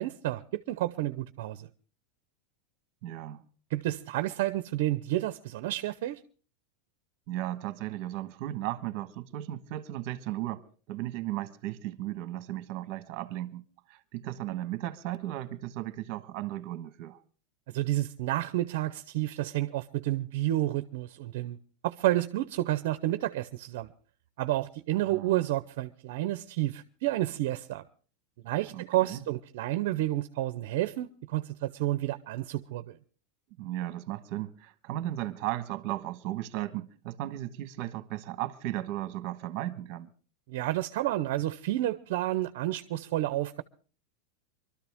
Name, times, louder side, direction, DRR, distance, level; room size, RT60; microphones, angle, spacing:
voice 1, 0.0-1.7 3.7-6.2 17.7-21.6 21.8-23.9 24.4-27.8 28.4-33.0 40.5-43.6, right 15 dB, 55° right, 0.7 m, -30 dB
voice 2, 3.0-3.4 7.3-17.2 25.0-25.5 28.7-29.2 33.6-40.1, right 14 dB, 40° right, 1.3 m, -36 dB
24.0 x 13.0 x 3.5 m
supercardioid pair, 170°, 0 cm